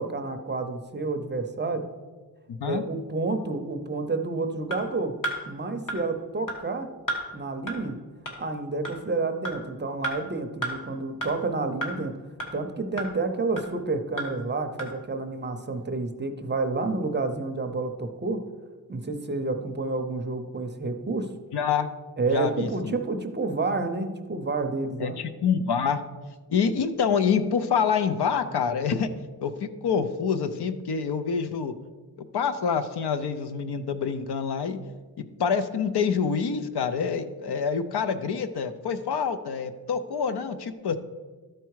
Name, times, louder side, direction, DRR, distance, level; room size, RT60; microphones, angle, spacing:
voice 1, 0.0-1.8 2.6-5.2 5.5-6.9 7.3-8.0 8.4-12.2 12.5-18.4 18.9-21.3 22.2-25.2, right 3 dB, 25° right, 6 dB, 0.5 m, -29 dB
voice 2, 2.5-2.8 21.5-21.9 22.3-23.0 25.0-26.0 26.5-29.1 29.4-31.7 32.3-34.8 35.4-41.0, left 6 dB, 70° left, 10 dB, 0.7 m, -26 dB
sound 1, 4.7-4.8 5.2-5.4 5.9-6.0 6.5-6.6 7.1-7.2 7.7-7.8 8.3-8.4 8.8-9.0 9.4-9.6 10.0-10.1 10.6-10.7 11.2-11.3 11.8-11.9 12.4-12.5 13.0-13.1 13.6-13.7 14.2-14.3 14.8-14.9, right 1 dB, 50° left, 1.6 m, -30 dB
12.5 x 4.6 x 4.7 m, 1.4 s
wide cardioid pair, 175°, 40 cm